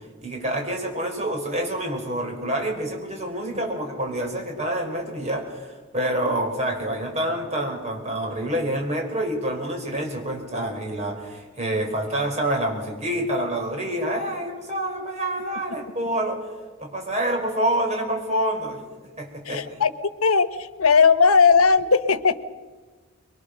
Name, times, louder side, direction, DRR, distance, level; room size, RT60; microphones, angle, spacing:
voice 1, 0.2-16.5 16.8-18.8 19.2-19.6, right 1 dB, 35° right, 2 dB, 4.6 m, -27 dB
voice 2, 19.4-19.9 20.2-22.4, left 5 dB, 85° left, 13 dB, 1.1 m, -18 dB
24.0 x 23.0 x 6.6 m, 1.4 s
head